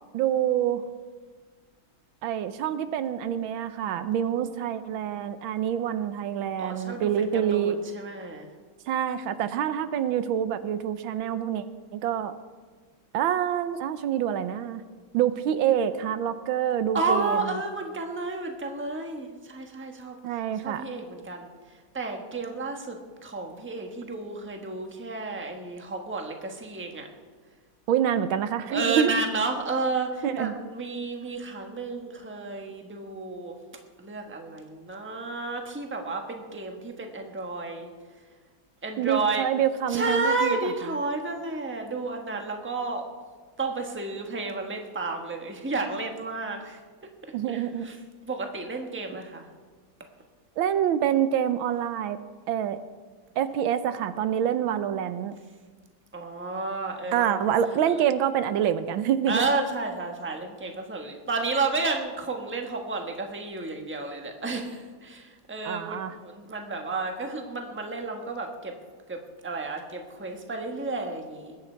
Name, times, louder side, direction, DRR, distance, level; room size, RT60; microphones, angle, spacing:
voice 1, 0.1-0.8 2.2-7.8 8.9-11.6 11.9-12.3 13.1-14.8 15.1-17.6 20.2-20.8 27.9-29.1 30.2-30.6 39.0-40.7 47.3-47.9 50.6-52.2 52.5-52.8 53.4-55.4 57.1-59.4 65.6-66.1, right 9 dB, 80° right, 12 dB, 1.5 m, -26 dB
voice 2, 6.6-7.1 7.5-8.5 16.9-20.2 20.6-21.5 21.9-27.1 28.7-33.6 34.0-37.9 38.8-39.5 39.9-43.0 43.6-46.8 47.5-47.9 48.2-49.4 56.1-57.4 59.3-68.7 69.1-71.6, right 3 dB, 5° right, 3 dB, 1.1 m, -31 dB
21.0 x 9.6 x 4.5 m, 1.5 s
omnidirectional pair, 2.1 m